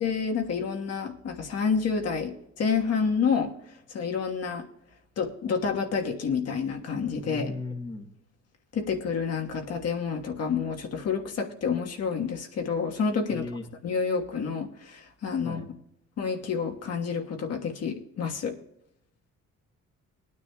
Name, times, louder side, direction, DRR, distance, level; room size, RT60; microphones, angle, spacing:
voice 1, 0.0-3.5 3.9-4.6 5.2-7.5 8.7-13.4 13.8-15.6 16.2-18.6, left 6 dB, 55° left, 3 dB, 1.4 m, -29 dB
voice 2, 7.2-8.1 13.3-13.6 15.4-15.6, left 3 dB, 15° left, 3 dB, 1.1 m, -36 dB
21.0 x 9.7 x 2.3 m, 0.79 s
cardioid pair, 145°, 30 cm